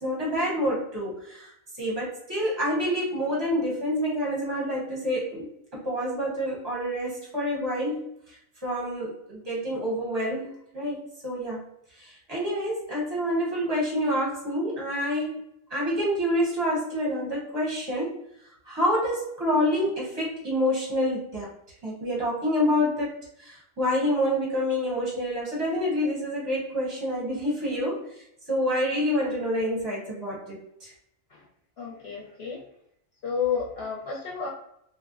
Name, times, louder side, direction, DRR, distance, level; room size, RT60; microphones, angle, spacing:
voice 1, 0.0-11.6 11.9-15.4 15.7-18.2 18.6-21.5 21.8-30.9, equal, 30° right, -4 dB, 0.5 m, -28 dB
voice 2, 31.8-32.6 33.2-34.5, left 6 dB, 60° left, -5 dB, 0.7 m, -31 dB
3.2 x 2.1 x 2.4 m, 0.76 s
omnidirectional pair, 1.5 m